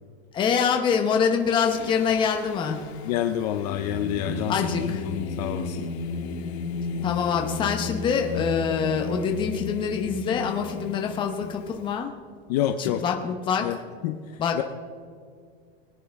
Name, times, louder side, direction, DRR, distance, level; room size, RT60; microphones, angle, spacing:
voice 1, 0.3-2.8 4.5-5.0 7.0-12.1 12.8-13.7 14.4-14.6, left 6 dB, 15° left, 3 dB, 0.9 m, -25 dB
Singing, 1.5-11.9, left 4 dB, 80° left, 1.8 m, -34 dB
voice 2, 3.0-4.8 5.1-5.9 12.5-13.0 13.6-13.8 14.0-14.6, left 11 dB, 40° left, 7 dB, 0.5 m, -28 dB
22.5 x 9.2 x 3.5 m, 2.2 s
supercardioid pair, 180°, 32 cm